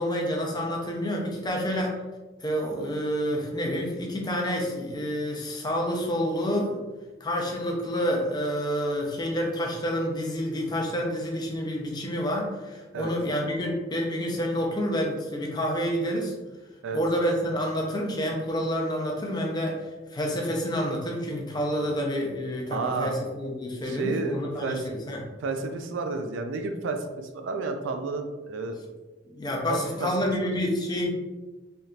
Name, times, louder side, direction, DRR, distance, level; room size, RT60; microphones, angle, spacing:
voice 1, 0.0-1.9 2.4-6.8 7.2-16.3 16.9-19.8 20.1-25.2 29.3-31.1, equal, 20° left, -1 dB, 0.5 m, -28 dB
voice 2, 22.7-23.1 23.8-24.8 25.4-28.8 29.7-30.1 30.4-30.5, right 3 dB, 80° right, 6 dB, 0.4 m, -31 dB
3.5 x 2.7 x 2.4 m, 1.2 s
head